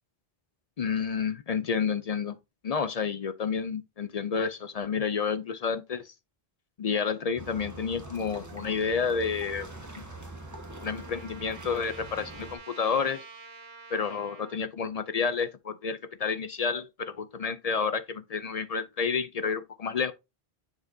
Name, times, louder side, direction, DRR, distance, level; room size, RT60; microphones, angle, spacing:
voice 1, 0.8-2.3 2.6-6.1 6.8-9.7 10.8-13.2 13.9-20.1, left 5 dB, 50° left, 0.5 m, -30 dB
sound 1, 7.4-12.6, right 1 dB, 15° right, 1.4 m, -43 dB
Trumpet, 9.5-14.6, right 4 dB, 55° right, 1.1 m, -49 dB
6.8 x 6.8 x 2.7 m
omnidirectional pair, 1.0 m